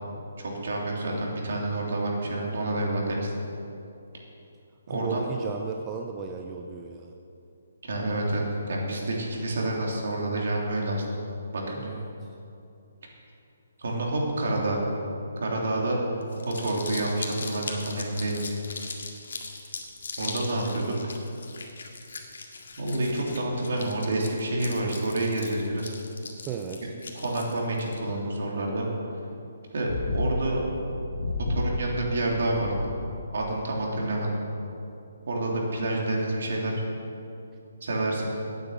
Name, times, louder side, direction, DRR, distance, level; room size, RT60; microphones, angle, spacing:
voice 1, 0.4-3.3 4.9-5.2 7.8-11.2 11.5-11.9 13.8-14.8 15.4-16.0 16.4-18.5 20.2-20.9 22.8-25.9 27.1-28.9 29.7-29.9 30.1-30.6 31.5-32.7 33.3-34.4 35.3-36.7 37.8-38.3, right 1 dB, 60° right, -2 dB, 3.3 m, -28 dB
voice 2, 4.9-7.1 11.8-12.1 26.5-26.9, right 5 dB, 15° right, 2 dB, 0.5 m, -35 dB
Crumpling crinkling, 16.2-28.0, left 3 dB, 75° left, 1.9 m, -39 dB
sound 1, 29.9-33.4 33.7-33.8, left 2 dB, 55° left, 1.9 m, -32 dB
10.0 x 9.2 x 8.2 m, 2.7 s
hypercardioid pair, 170°, 0 cm